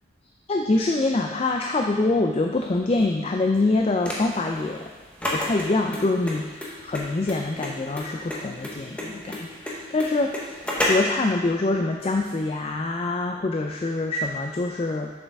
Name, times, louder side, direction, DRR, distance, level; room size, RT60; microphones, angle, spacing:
voice 1, 0.5-4.9 5.3-10.6 10.8-15.1, left 2 dB, 30° left, 2 dB, 0.3 m, -25 dB
sound 1, 4.0-11.2, left 1 dB, 5° left, 0.9 m, -30 dB
7.2 x 6.5 x 3.5 m, 1.3 s
head